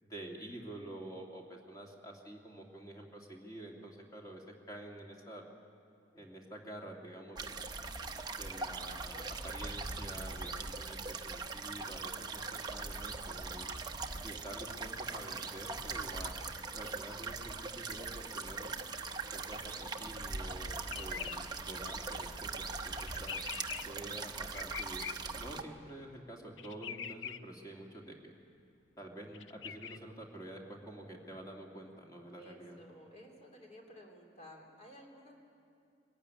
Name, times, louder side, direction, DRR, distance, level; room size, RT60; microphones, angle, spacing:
voice 1, 0.0-5.4 6.1-7.6 8.3-13.7 14.2-16.4 16.7-18.7 19.3-23.4 23.9-25.0 25.3-28.3 29.0-32.8, right 1 dB, 20° left, -1 dB, 2.6 m, -48 dB
sound 1, 7.4-25.6, right 4 dB, 25° right, 0.9 m, -41 dB
sound 2, 20.9-21.4 23.0-23.8 24.5-25.1 26.6-27.4 29.3-30.0, left 8 dB, 85° left, 0.7 m, -42 dB
voice 2, 32.3-35.3, equal, 35° left, 1 dB, 3.3 m, -54 dB
23.5 x 15.5 x 9.7 m, 2.4 s
head